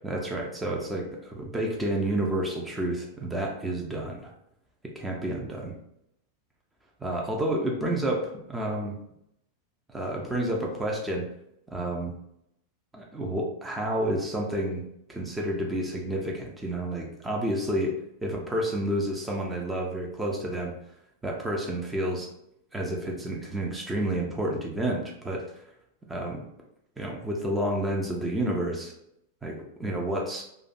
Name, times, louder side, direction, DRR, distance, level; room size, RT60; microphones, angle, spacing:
voice 1, 0.0-4.3 4.8-5.7 7.0-9.0 9.9-11.3 11.7-12.1 12.9-14.8 15.1-20.7 21.2-22.3 22.7-25.5 26.1-26.4 27.0-28.9 29.4-30.4, right 1 dB, 10° right, -1 dB, 0.5 m, -30 dB
2.5 x 2.1 x 2.4 m, 0.78 s
figure-of-eight pair, 90°, 0 cm